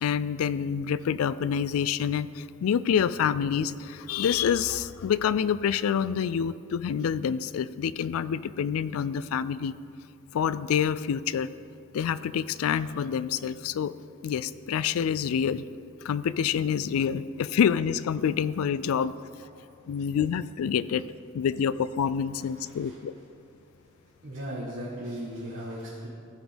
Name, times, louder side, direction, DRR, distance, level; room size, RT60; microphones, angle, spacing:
voice 1, 0.0-9.7 10.3-11.5 11.9-13.9 14.2-15.6 16.0-19.1 19.9-21.0 21.3-23.1, left 7 dB, 80° left, 17 dB, 0.3 m, -27 dB
voice 2, 22.6-23.0 24.2-26.1, equal, 55° right, -8 dB, 1.5 m, -37 dB
15.0 x 5.1 x 5.1 m, 2.5 s
head